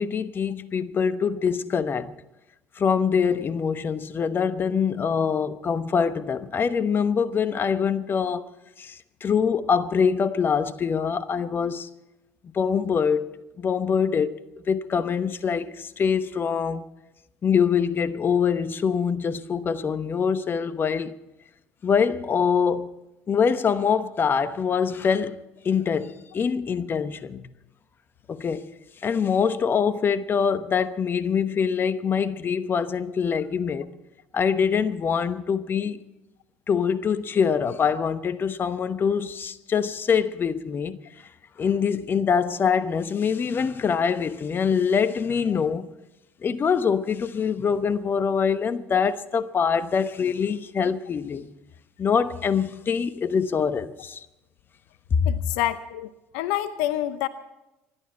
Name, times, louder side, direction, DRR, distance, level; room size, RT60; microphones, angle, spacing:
voice 1, 0.0-2.1 2.8-8.5 8.8-11.9 12.5-13.3 13.6-14.4 14.7-16.9 17.4-21.2 21.8-22.9 23.3-27.5 28.3-28.7 29.0-33.9 34.3-36.0 36.7-41.0 41.6-45.9 46.4-51.5 52.0-54.3 55.2-55.3, left 6 dB, 40° left, 1.0 m, -24 dB
voice 2, 55.3-57.3, left 13 dB, 70° left, 0.6 m, -27 dB
26.0 x 11.5 x 4.4 m
hypercardioid pair, 65°, 6 cm